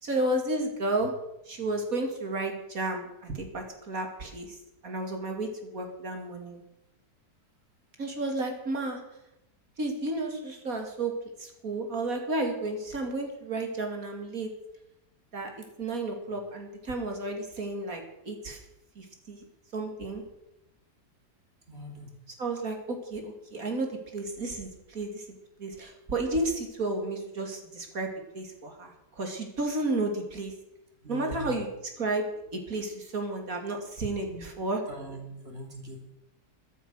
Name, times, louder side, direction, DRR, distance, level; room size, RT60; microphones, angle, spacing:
voice 1, 0.0-1.1 1.5-4.6 4.8-6.6 8.0-9.0 9.8-11.1 11.4-14.5 15.3-18.6 19.0-19.4 19.7-20.2 22.4-25.2 25.6-28.1 28.3-30.5 31.1-31.7 32.0-32.3 32.5-34.8, right 2 dB, 55° right, 3 dB, 3.0 m, -32 dB
voice 2, 21.7-22.1 31.0-31.6 34.3-34.4 34.9-36.0, equal, 35° right, 2 dB, 3.5 m, -41 dB
13.5 x 13.0 x 6.4 m, 0.87 s
omnidirectional pair, 1.8 m